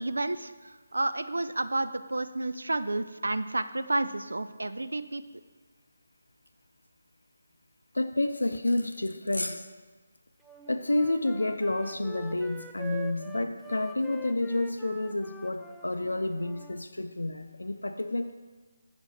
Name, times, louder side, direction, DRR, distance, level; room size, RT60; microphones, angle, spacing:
voice 1, 0.0-5.2, right 2 dB, 75° right, 11 dB, 0.4 m, -31 dB
voice 2, 7.9-9.6 10.7-18.3, left 2 dB, 80° left, 6 dB, 0.4 m, -29 dB
Wind instrument woodwind instrument, 10.4-16.8, right 1 dB, ahead, 0.3 m, -45 dB
7.6 x 5.8 x 4.3 m, 1.3 s
figure-of-eight pair, 150°, 0 cm